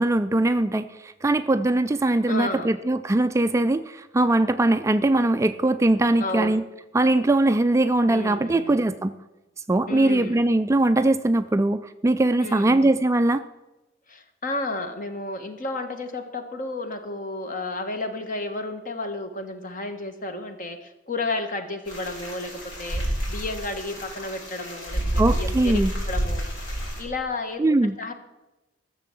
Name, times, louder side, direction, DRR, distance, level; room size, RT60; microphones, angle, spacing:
voice 1, 0.0-6.6 6.9-9.1 9.7-13.4 25.2-25.9 27.6-28.0, right 2 dB, 15° right, 11 dB, 0.3 m, -21 dB
voice 2, 2.3-2.8 6.2-6.6 8.1-8.8 9.9-10.4 12.4-13.0 14.1-26.5 27.0-28.1, left 2 dB, 45° left, 7 dB, 1.3 m, -32 dB
sound 1, 21.9-27.0, equal, 70° left, 3.9 m, -29 dB
14.0 x 6.9 x 7.5 m, 1.0 s
head